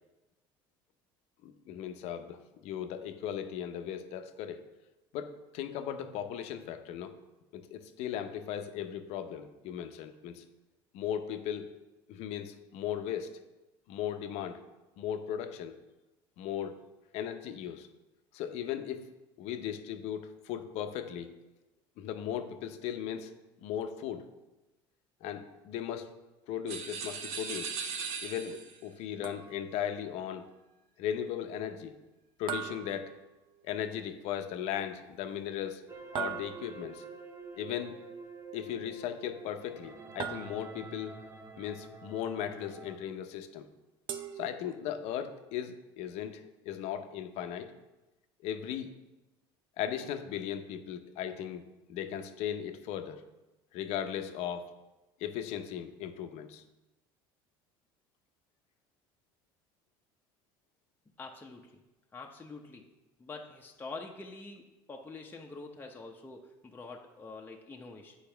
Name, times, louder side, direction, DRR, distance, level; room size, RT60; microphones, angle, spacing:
voice 1, 1.4-4.6 5.1-7.1 7.5-10.4 10.9-11.7 12.1-13.4 13.9-14.6 15.0-15.7 16.4-16.8 17.1-17.9 18.3-19.0 19.4-21.3 22.0-23.3 23.6-24.3 25.2-26.1 26.5-27.8 28.2-30.5 31.0-32.0 32.4-33.1 33.6-35.8 36.1-37.0 37.5-38.0 38.5-41.1 41.6-43.7 44.4-47.7 48.4-49.0 49.8-53.2 53.7-54.7 55.2-56.6, left 9 dB, 65° left, 7 dB, 0.7 m, -37 dB
sound 1, 26.7-28.8, right 5 dB, 60° right, 1.0 m, -38 dB
sound 2, 29.2-29.9 32.5-33.7 36.2-37.0 40.2-41.0 44.1-45.1, right 8 dB, 45° right, 0.6 m, -40 dB
sound 3, 35.9-43.0, right 4 dB, 25° right, 0.9 m, -48 dB
voice 2, 61.2-61.7 62.1-62.8 63.2-68.2, left 3 dB, 15° left, 1 dB, 0.8 m, -46 dB
8.5 x 4.7 x 3.4 m, 1.0 s
supercardioid pair, 90°, 12 cm